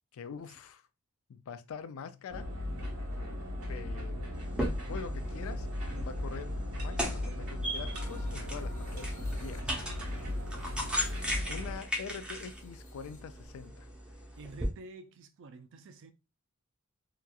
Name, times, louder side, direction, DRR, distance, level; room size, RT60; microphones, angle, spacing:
voice 1, 0.1-0.8 1.3-2.5 3.7-4.3 4.9-5.7 5.9-10.0 11.5-13.9, left 6 dB, 65° left, 0.3 m, -44 dB
sound 1, 2.3-11.8, left 1 dB, 85° right, 1.1 m, -37 dB
sound 2, 4.3-14.7, equal, 5° right, 0.6 m, -38 dB
sound 3, 7.9-13.6, left 2 dB, 35° left, 0.7 m, -57 dB
voice 2, 14.4-16.1, right 3 dB, 60° right, 0.4 m, -49 dB
2.9 x 2.3 x 2.3 m
head